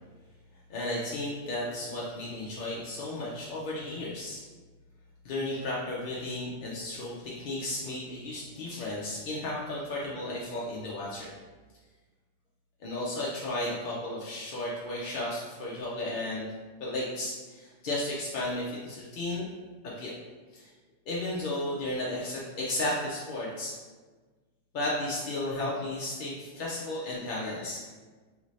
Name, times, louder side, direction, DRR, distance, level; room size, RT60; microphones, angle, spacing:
voice 1, 0.7-4.4 5.2-11.3 12.8-16.5 16.8-19.5 19.8-20.1 20.5-20.7 21.1-23.7 24.7-27.8, left 1 dB, 55° left, -6 dB, 0.6 m, -34 dB
3.3 x 2.6 x 3.1 m, 1.4 s
omnidirectional pair, 1.3 m